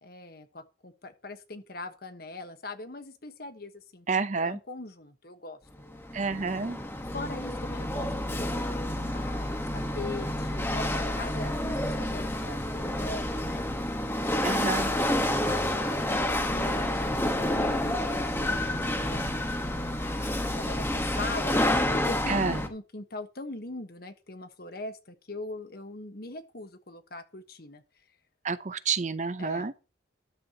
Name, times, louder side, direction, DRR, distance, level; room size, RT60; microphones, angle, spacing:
voice 1, 0.0-5.6 7.1-13.6 14.6-27.8 29.4-29.9, left 2 dB, 50° left, 1.3 m, -41 dB
voice 2, 4.1-4.6 6.1-6.8 14.4-14.9 22.3-22.6 28.4-29.7, right 4 dB, 40° right, 0.6 m, -29 dB
Chatter / Hiss / Rattle, 5.8-22.7, left 1 dB, 10° left, 1.2 m, -29 dB
13.0 x 10.5 x 2.9 m
head